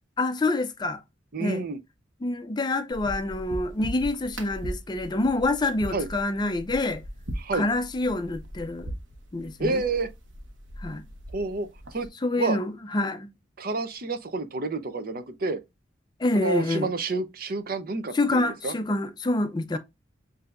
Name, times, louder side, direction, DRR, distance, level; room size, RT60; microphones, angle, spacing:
voice 1, 0.2-1.0 1.4-1.6 2.2-7.0 7.5-8.9 9.3-9.8 10.8-11.0 12.2-13.3 16.2-16.9 18.1-19.8, left 2 dB, 25° left, 0.4 m, -27 dB
voice 2, 1.3-1.8 5.9-6.1 7.4-7.7 9.6-10.1 11.3-11.7 11.9-12.1 12.4-12.6 13.6-15.6 16.3-18.7, right 3 dB, 50° right, 0.6 m, -29 dB
sound 1, 2.9-12.1, equal, 85° right, 1.1 m, -40 dB
7.7 x 2.7 x 2.5 m
head